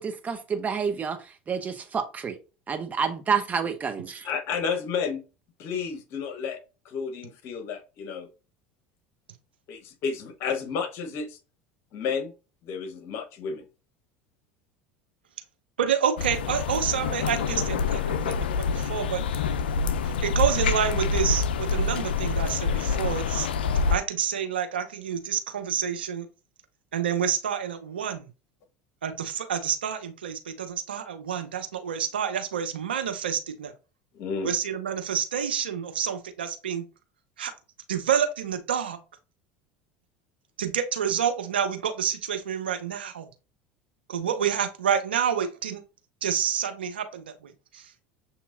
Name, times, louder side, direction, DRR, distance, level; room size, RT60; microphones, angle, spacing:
voice 1, 0.0-2.4 2.7-4.3, right 6 dB, 30° right, 0.9 m, -29 dB
voice 2, 4.2-5.2 5.6-8.3 9.7-11.4 11.9-12.3 12.6-13.6 34.1-34.5, left 6 dB, 55° left, 1.0 m, -31 dB
voice 3, 15.8-19.2 20.0-23.5 23.9-26.3 26.9-28.3 29.0-33.7 34.4-36.9 37.4-37.5 37.9-39.0 40.6-43.3 44.1-45.8 46.2-47.8, right 8 dB, 85° right, 0.7 m, -28 dB
sound 1, 16.2-24.0, left 5 dB, 80° left, 0.3 m, -26 dB
7.0 x 2.9 x 2.5 m
hypercardioid pair, 75°, 5 cm